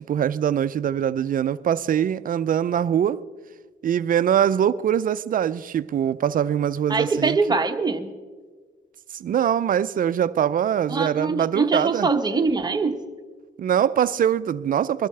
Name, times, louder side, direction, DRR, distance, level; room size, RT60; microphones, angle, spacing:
voice 1, 0.0-3.2 3.8-7.4 9.2-12.1 13.6-15.1, right 9 dB, 45° right, 0.4 m, -23 dB
voice 2, 6.9-8.1 10.9-13.1, right 4 dB, 20° right, 1.0 m, -23 dB
22.0 x 12.5 x 3.3 m
cardioid pair, 90°, 20 cm